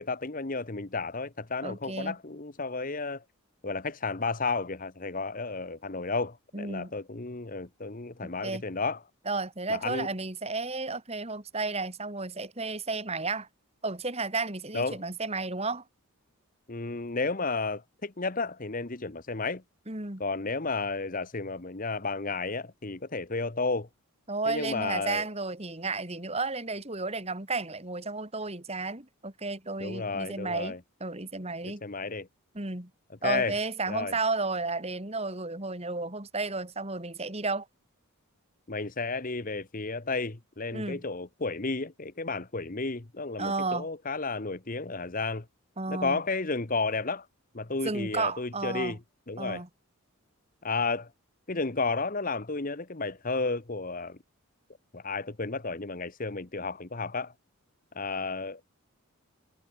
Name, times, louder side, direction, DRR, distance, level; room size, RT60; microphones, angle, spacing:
voice 1, 0.0-3.2 3.6-9.0 9.7-10.1 14.7-15.0 16.7-19.6 20.2-23.9 24.5-25.2 29.8-30.8 31.6-32.3 33.2-33.6 33.9-34.2 38.7-45.4 45.9-47.3 47.5-49.0 49.3-49.6 50.6-51.1 51.5-54.2 54.9-57.3 57.9-58.6, left 3 dB, 35° left, 1.1 m, -32 dB
voice 2, 1.6-2.2 6.5-6.9 8.2-8.6 9.3-13.5 13.8-15.8 19.9-20.2 24.3-30.7 31.0-31.8 32.5-32.9 33.2-37.7 40.7-41.0 43.4-43.9 45.8-46.2 47.8-49.0 49.4-49.7, right 3 dB, 30° right, 2.7 m, -33 dB
head